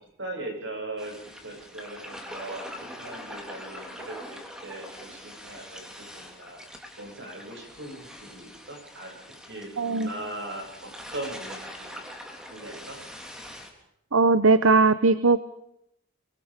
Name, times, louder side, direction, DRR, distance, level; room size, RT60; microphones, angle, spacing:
voice 1, 0.2-1.2 1.4-6.6 7.0-9.1 9.5-12.0 12.5-13.0, right 2 dB, 65° right, 3 dB, 7.6 m, -39 dB
sound 1, 1.0-13.7, equal, 5° right, 3.5 m, -43 dB
voice 2, 9.8-10.1 14.1-15.4, right 3 dB, 90° right, 14 dB, 0.9 m, -19 dB
25.0 x 23.5 x 5.2 m, 0.80 s
head